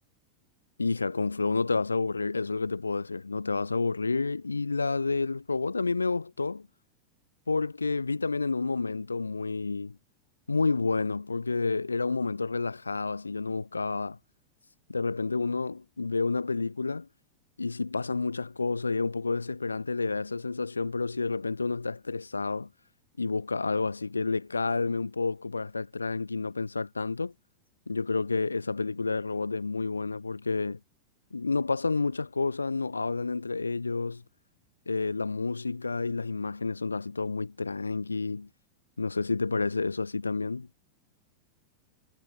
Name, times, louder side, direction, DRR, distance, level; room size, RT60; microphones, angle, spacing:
voice 1, 0.8-6.7 7.5-10.0 10.5-14.2 14.9-17.1 17.6-22.7 23.2-27.3 27.9-30.8 31.3-34.2 34.9-38.5 39.0-40.7, left 3 dB, 80° left, 3.9 m, -30 dB
figure-of-eight pair, 90°, 0 cm